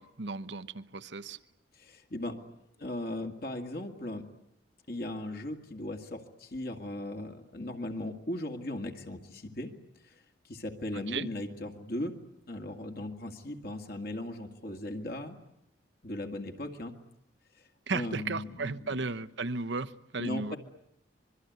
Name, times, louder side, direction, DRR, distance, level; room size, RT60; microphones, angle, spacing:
voice 1, 0.0-1.4 10.9-11.3 17.9-20.6, right 3 dB, 70° right, 13 dB, 1.0 m, -35 dB
voice 2, 1.7-2.4 2.8-4.2 4.9-9.7 10.0-12.1 12.5-15.4 16.0-16.9 17.5-19.0 20.2-20.6, left 1 dB, 50° left, 3 dB, 2.1 m, -38 dB
25.5 x 22.5 x 9.4 m, 0.79 s
head